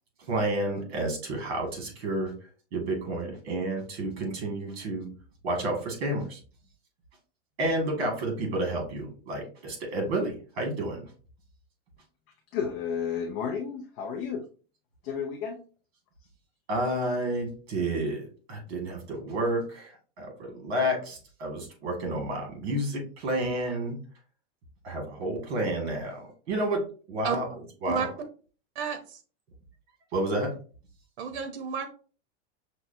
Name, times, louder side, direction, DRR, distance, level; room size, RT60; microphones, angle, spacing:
voice 1, 0.3-2.3 2.7-5.1 5.4-6.4 7.6-11.1 16.7-24.0 24.8-26.8 27.1-28.1 30.1-30.5, right 1 dB, 70° right, 2 dB, 1.9 m, -30 dB
voice 2, 12.5-14.4 15.0-15.6, left 7 dB, 30° left, 0 dB, 0.4 m, -32 dB
voice 3, 31.2-31.9, right 6 dB, 90° right, 8 dB, 0.9 m, -30 dB
5.9 x 2.2 x 2.6 m, 0.38 s
supercardioid pair, 175°, 32 cm